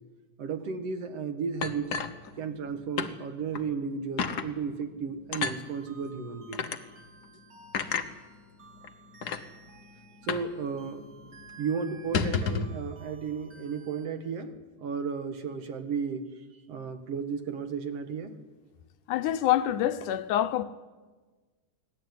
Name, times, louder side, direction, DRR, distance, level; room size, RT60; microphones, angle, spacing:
voice 1, 0.4-2.0 2.4-6.7 10.2-11.0 11.6-16.3 16.7-18.3, right 5 dB, 55° right, 2.4 m, -34 dB
sound 1, 1.6-2.7 3.0-3.1 3.5-3.7 4.2-4.5 5.3-5.6 6.5-6.8 7.7-8.1 8.8-8.9 9.2-9.4 10.3-10.5 10.8-10.9 11.2-11.4 12.0-12.7, left 5 dB, 65° left, 1.0 m, -30 dB
sound 2, 5.3-14.1, right 4 dB, 35° right, 3.7 m, -55 dB
voice 2, 19.1-20.6, left 12 dB, 85° left, 2.4 m, -26 dB
24.5 x 18.0 x 9.4 m
omnidirectional pair, 3.5 m